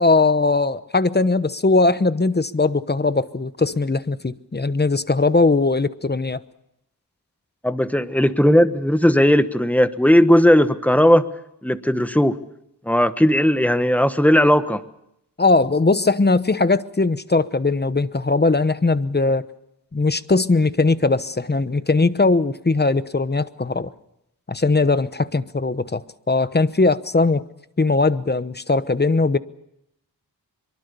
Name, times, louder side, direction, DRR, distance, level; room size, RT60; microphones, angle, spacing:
voice 1, 0.0-6.4 15.4-19.5 19.9-23.9 24.5-27.4 27.8-29.4, left 3 dB, 25° left, 14 dB, 1.0 m, -19 dB
voice 2, 7.6-11.2 11.6-12.4 12.9-14.8, equal, 5° left, 11 dB, 1.3 m, -16 dB
23.5 x 23.5 x 7.0 m, 0.81 s
wide cardioid pair, 70°, 38 cm